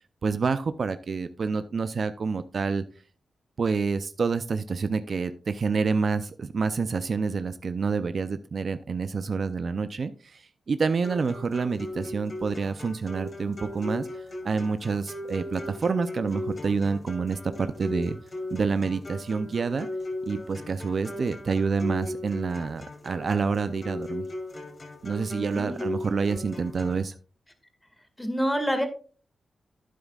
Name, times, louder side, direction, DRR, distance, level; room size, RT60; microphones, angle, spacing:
voice 1, 0.2-2.8 3.6-14.1 14.4-18.2 18.5-19.9 20.3-24.2 25.0-27.1, right 4 dB, 60° right, 12 dB, 0.5 m, -28 dB
sound 1, 11.0-27.0, left 1 dB, 45° left, 2.7 m, -38 dB
voice 2, 25.3-25.8 28.2-28.9, equal, 10° left, 6 dB, 2.0 m, -27 dB
11.0 x 8.7 x 2.4 m, 0.38 s
cardioid pair, 55°, 0 cm